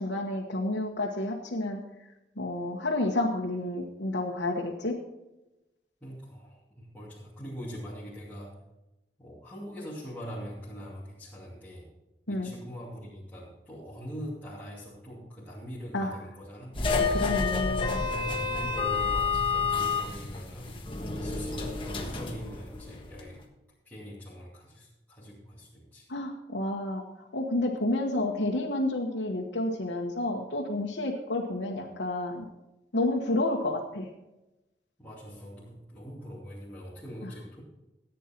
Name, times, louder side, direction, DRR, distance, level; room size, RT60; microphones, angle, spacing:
voice 1, 0.0-1.8 2.4-5.0 12.3-12.5 15.9-16.1 17.1-18.0 26.1-32.5 32.9-34.1 37.2-37.3, left 2 dB, 90° left, -1 dB, 1.3 m, -30 dB
voice 2, 6.0-8.6 9.2-11.9 12.3-16.9 18.0-20.8 21.1-23.4 23.8-26.1 35.0-37.6, equal, 10° left, -10 dB, 2.7 m, -43 dB
sound 1, 16.7-23.3, left 4 dB, 30° left, 1.4 m, -30 dB
14.5 x 9.2 x 4.5 m, 0.98 s
head